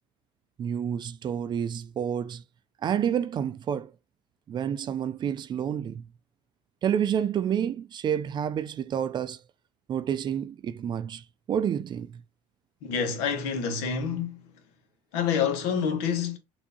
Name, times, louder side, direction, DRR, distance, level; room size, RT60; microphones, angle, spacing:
voice 1, 0.6-2.4 2.8-3.9 4.5-6.0 6.8-9.4 9.9-12.2, right 8 dB, 35° right, 0.4 m, -29 dB
voice 2, 12.8-14.4 15.1-16.4, left 7 dB, 85° left, 1.2 m, -27 dB
6.1 x 2.7 x 2.8 m
supercardioid pair, 110°, 12 cm